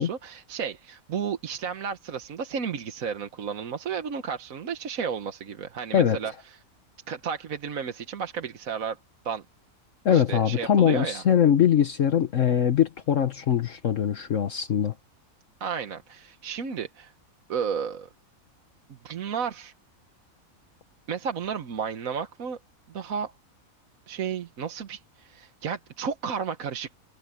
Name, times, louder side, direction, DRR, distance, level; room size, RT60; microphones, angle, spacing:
voice 1, 0.0-6.3 7.1-9.0 9.2-9.4 10.1-11.2 15.6-17.1 17.5-18.1 18.9-19.7 21.1-22.6 22.9-23.3 24.1-26.9, right 7 dB, 70° right, 1.5 m, -32 dB
voice 2, 10.0-14.9, left 9 dB, 60° left, 1.3 m, -22 dB
omnidirectional pair, 1.5 m